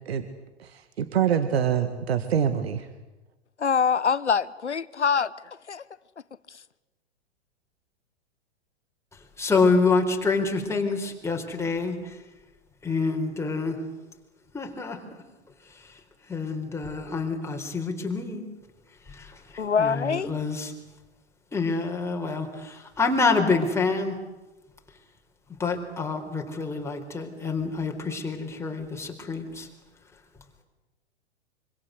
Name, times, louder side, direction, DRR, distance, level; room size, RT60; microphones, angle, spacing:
voice 1, 0.6-2.9, right 8 dB, 65° right, 10 dB, 2.0 m, -25 dB
voice 2, 3.6-5.3 5.7-5.8 19.6-20.3, left 6 dB, 85° left, 19 dB, 1.0 m, -24 dB
voice 3, 9.1-12.2 12.8-13.8 14.5-15.0 15.7-16.0 16.3-18.5 19.1-20.7 21.5-24.2 25.5-29.7, left 4 dB, 10° left, 2 dB, 4.2 m, -27 dB
26.0 x 25.5 x 8.2 m, 1.1 s
figure-of-eight pair, 105°, 33 cm